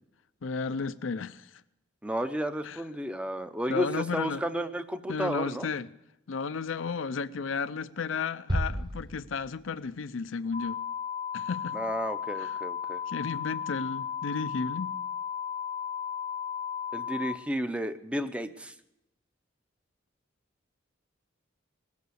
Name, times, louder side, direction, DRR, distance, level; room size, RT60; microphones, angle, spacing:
voice 1, 0.4-1.6 2.6-2.8 3.7-4.4 5.1-5.9 6.3-10.8 11.3-11.8 12.3-12.6 13.1-14.9, left 5 dB, 75° left, 0.5 m, -33 dB
voice 2, 2.0-5.7 11.7-13.0 16.9-18.7, equal, 5° right, 0.6 m, -32 dB
sound 1, 8.5-10.1, equal, 25° right, 1.1 m, -33 dB
sound 2, 10.5-17.4, left 8 dB, 50° right, 1.8 m, -35 dB
19.5 x 8.4 x 6.3 m
head